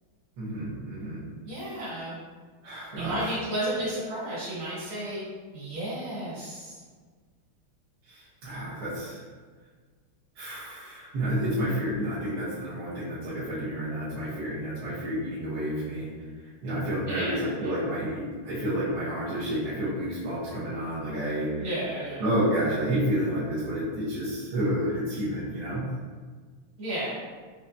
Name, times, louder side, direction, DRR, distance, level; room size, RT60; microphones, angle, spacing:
voice 1, 0.4-1.2 1.5-1.8 2.6-3.4 8.1-9.2 10.3-16.1 16.4-21.7 22.2-25.8, equal, 90° right, -10 dB, 1.8 m, -30 dB
voice 2, 1.4-2.2 2.9-5.2 5.5-6.8 17.1-17.7 21.6-22.2 26.8-27.1, right 1 dB, 70° right, -10 dB, 2.5 m, -33 dB
5.3 x 2.7 x 2.2 m, 1.5 s
omnidirectional pair, 2.4 m